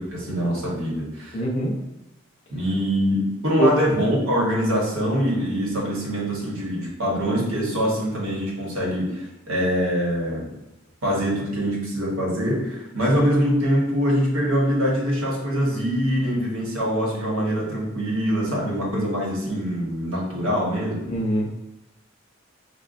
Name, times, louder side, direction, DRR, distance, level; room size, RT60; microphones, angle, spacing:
voice 1, 0.0-1.4 2.5-10.5 11.0-21.0, equal, 85° right, -3 dB, 1.1 m, -24 dB
voice 2, 1.3-1.9 3.6-3.8 21.1-21.5, right 1 dB, 30° left, -2 dB, 0.5 m, -23 dB
5.0 x 2.2 x 2.4 m, 0.97 s
head